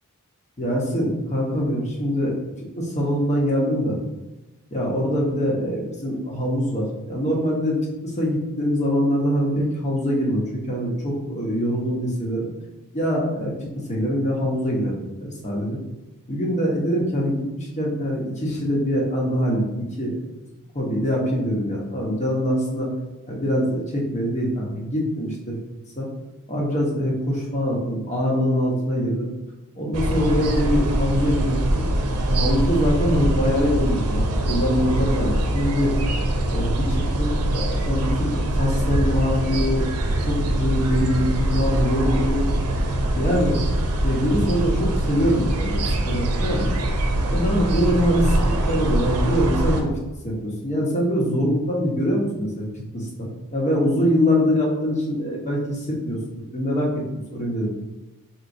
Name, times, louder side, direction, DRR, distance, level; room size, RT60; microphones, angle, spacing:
voice 1, 0.6-2.4 2.7-4.0 4.7-7.8 8.0-12.5 12.9-13.5 13.9-15.8 16.3-20.1 20.7-22.9 23.3-25.5 26.0-26.1 26.5-29.3 29.7-31.9 32.3-35.9 36.5-39.8 40.3-42.5 43.1-43.6 44.0-46.7 47.3-49.9 50.2-52.6 52.9-56.9 57.3-57.7, equal, 30° left, -3 dB, 1.0 m, -23 dB
sound 1, 29.9-49.8, right 1 dB, 80° right, 0.6 m, -23 dB
4.5 x 4.0 x 2.7 m, 1.0 s
head